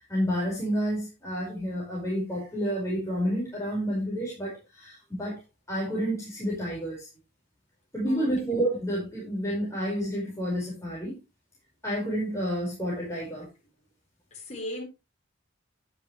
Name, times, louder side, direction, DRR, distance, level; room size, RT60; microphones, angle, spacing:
voice 1, 0.1-5.4 5.7-7.1 7.9-11.2 11.8-13.5, equal, 15° left, 4.9 m, -30 dB
voice 2, 14.3-14.8, left 1 dB, 35° left, 4.3 m, -37 dB
10.5 x 10.5 x 3.1 m
head